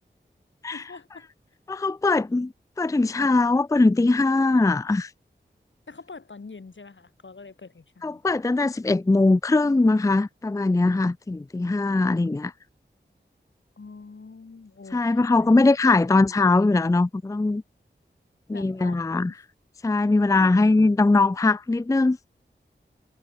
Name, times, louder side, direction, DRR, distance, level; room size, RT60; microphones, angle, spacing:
voice 1, 0.7-1.3 5.9-8.2 12.2-12.4 13.8-15.6 15.9-16.1 18.5-19.0 20.0-20.1 20.3-20.5, left 4 dB, 80° left, 5.4 m, -44 dB
voice 2, 1.7-2.5 2.8-5.1 8.0-12.5 14.9-17.6 18.5-19.3 19.8-22.2, left 3 dB, 15° left, 0.4 m, -21 dB
wide cardioid pair, 70°, 19 cm